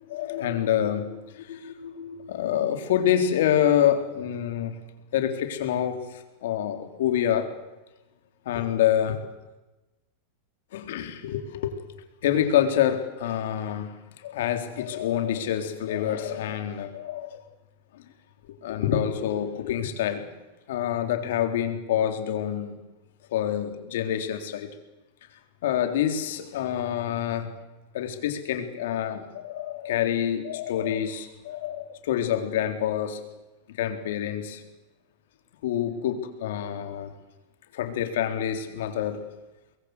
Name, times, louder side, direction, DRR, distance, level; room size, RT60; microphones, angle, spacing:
voice 1, 0.1-4.7 5.1-7.5 8.5-9.2 10.7-11.8 12.2-13.9 14.2-17.4 18.6-20.3 20.7-22.8 23.3-24.7 25.6-27.6 27.9-33.2 33.7-34.6 35.6-37.1 37.7-39.2, left 10 dB, 75° left, 7 dB, 3.9 m, -27 dB
23.5 x 21.5 x 8.2 m, 1.1 s
supercardioid pair, 130°, 0 cm